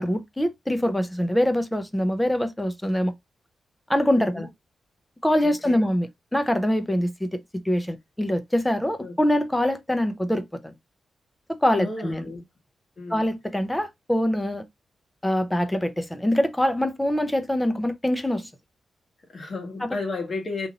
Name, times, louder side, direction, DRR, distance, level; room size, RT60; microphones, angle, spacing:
voice 1, 0.0-3.1 3.9-4.5 5.2-6.1 6.3-7.3 7.6-10.7 11.6-12.2 13.1-14.7 15.2-18.5, left 1 dB, 10° left, 0.6 m, -24 dB
voice 2, 4.2-4.5 5.4-5.9 9.0-9.1 11.7-12.4 13.0-13.3 19.2-20.7, left 3 dB, 45° left, 1.4 m, -33 dB
3.0 x 2.5 x 4.0 m
wide cardioid pair, 110°, 0 cm